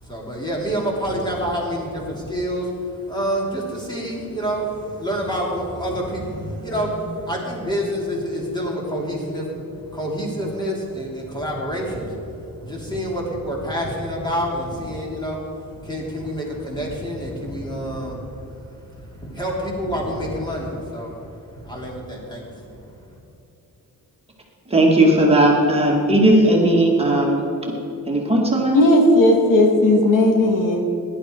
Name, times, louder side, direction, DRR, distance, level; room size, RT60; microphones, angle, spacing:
voice 1, 0.0-23.2, equal, 10° left, -3 dB, 3.2 m, -28 dB
voice 2, 24.7-27.4 27.7-27.8 28.1-28.8, right 1 dB, 15° right, -2 dB, 2.3 m, -16 dB
voice 3, 28.7-30.8, left 1 dB, 65° left, 1 dB, 2.2 m, -15 dB
17.5 x 11.0 x 4.7 m, 2.9 s
wide cardioid pair, 145°, 34 cm